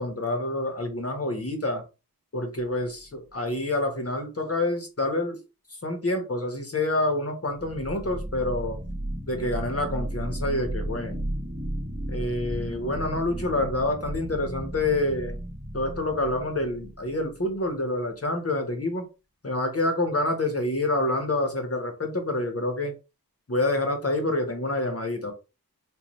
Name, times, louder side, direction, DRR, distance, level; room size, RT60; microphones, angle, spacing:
voice 1, 0.0-1.8 2.3-5.4 5.8-8.8 9.3-11.2 12.1-15.4 15.7-19.0 19.4-22.9 23.5-25.3, left 2 dB, 40° left, 4 dB, 1.2 m, -27 dB
sound 1, 3.1-3.2 7.5-17.7, right 1 dB, 10° right, 1.0 m, -34 dB
3.9 x 2.6 x 3.1 m, 0.29 s
wide cardioid pair, 60°, 36 cm